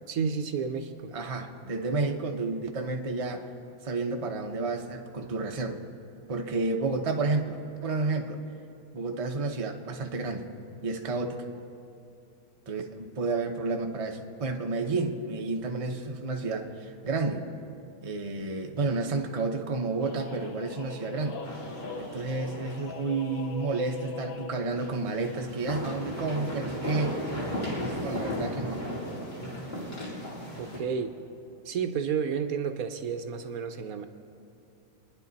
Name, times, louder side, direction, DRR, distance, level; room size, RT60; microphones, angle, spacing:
voice 1, 0.1-1.2 30.6-31.2 31.6-34.1, right 6 dB, 65° right, 8 dB, 1.1 m, -31 dB
voice 2, 1.1-3.5 3.8-5.8 6.3-8.4 8.9-10.5 10.8-11.4 12.7-17.4 18.0-21.4 22.0-27.2 27.7-28.8, right 3 dB, 30° right, 3 dB, 0.7 m, -31 dB
sound 1, 20.0-24.7, left 4 dB, 60° left, 1.4 m, -42 dB
sound 2, 21.4-23.0 23.3-23.4 24.7-30.8, left 1 dB, 40° left, 3.0 m, -35 dB
25.5 x 10.5 x 4.0 m, 2.7 s
omnidirectional pair, 1.7 m